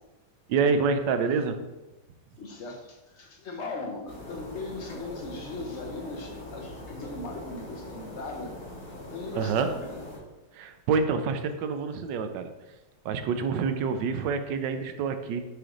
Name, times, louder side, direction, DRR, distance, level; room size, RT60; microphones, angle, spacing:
voice 1, 0.5-1.6 9.3-9.7 10.5-12.5 13.0-15.4, right 5 dB, 80° right, 8 dB, 1.2 m, -27 dB
voice 2, 2.4-8.6 9.1-10.0, left 3 dB, 50° left, 1 dB, 0.9 m, -39 dB
sound 1, 4.1-10.2, left 1 dB, 75° left, 2.5 m, -42 dB
7.7 x 3.3 x 3.8 m, 1.1 s
omnidirectional pair, 1.9 m